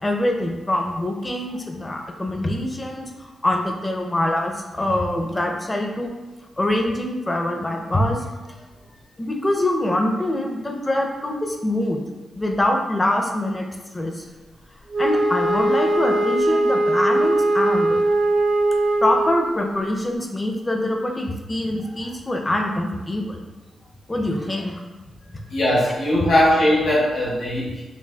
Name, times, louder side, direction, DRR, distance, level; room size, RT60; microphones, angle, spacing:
voice 1, 0.0-3.1 3.4-6.1 6.6-8.2 9.2-12.0 12.3-13.7 13.9-14.2 15.0-18.0 19.0-23.4 24.1-24.8, left 1 dB, 20° left, 2 dB, 0.5 m, -24 dB
Wind instrument woodwind instrument, 14.9-19.5, right 1 dB, 45° right, 0.5 m, -20 dB
voice 2, 25.5-27.8, left 1 dB, 90° left, -7 dB, 1.0 m, -19 dB
5.8 x 2.3 x 2.2 m, 1.2 s
wide cardioid pair, 120°, 0 cm